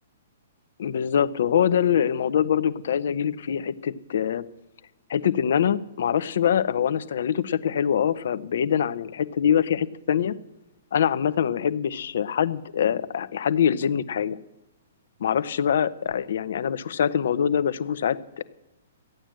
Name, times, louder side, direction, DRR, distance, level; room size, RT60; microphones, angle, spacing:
voice 1, 0.8-4.4 5.1-10.3 10.9-14.4 15.2-18.4, left 8 dB, 70° left, 13 dB, 0.8 m, -24 dB
14.5 x 9.0 x 7.6 m, 1.0 s
hypercardioid pair, 140°, 0 cm